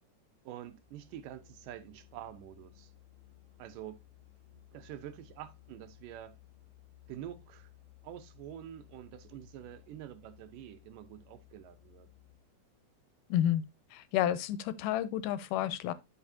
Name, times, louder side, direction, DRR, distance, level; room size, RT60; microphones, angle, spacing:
voice 1, 0.4-2.9 3.6-4.0 4.7-6.4 7.1-7.7 8.0-12.1, right 11 dB, 85° right, 2.4 m, -47 dB
Musical instrument, 0.6-12.6, left 17 dB, 25° left, 2.1 m, -59 dB
voice 2, 13.3-13.6 13.9-15.9, left 11 dB, 85° left, 2.2 m, -30 dB
11.0 x 5.3 x 2.7 m
omnidirectional pair, 3.7 m